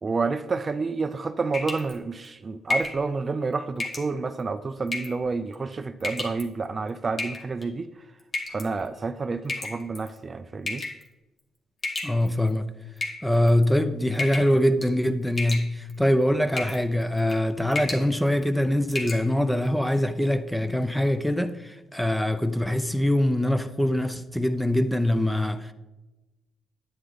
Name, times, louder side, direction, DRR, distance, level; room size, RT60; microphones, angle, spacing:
voice 1, 0.0-7.9 8.5-10.8, right 4 dB, 35° right, 0.4 m, -29 dB
sound 1, 1.5-1.9 2.7-3.0 3.8-4.1 4.9-5.2 6.0-6.4 7.2-7.6 8.3-8.7 9.5-10.1 10.7-11.0 11.8-12.5 13.0-13.6 14.2-14.5 14.8-15.1 15.4-15.9 16.6-16.8 17.2-17.4 17.7-18.1 18.4-18.5 18.9-19.2, left 2 dB, 35° left, 1.8 m, -31 dB
voice 2, 12.0-12.7 13.2-25.7, left 1 dB, 5° left, 0.7 m, -23 dB
9.9 x 8.8 x 4.0 m
cardioid pair, 90°, 0 cm